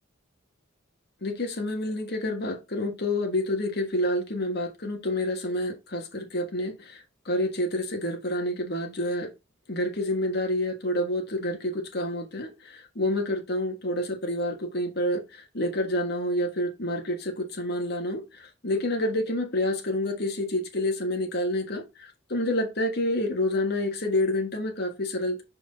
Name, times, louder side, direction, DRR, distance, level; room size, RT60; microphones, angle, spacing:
voice 1, 1.2-9.3 9.7-25.4, left 1 dB, 50° left, 1.5 m, -28 dB
5.4 x 4.6 x 4.1 m
head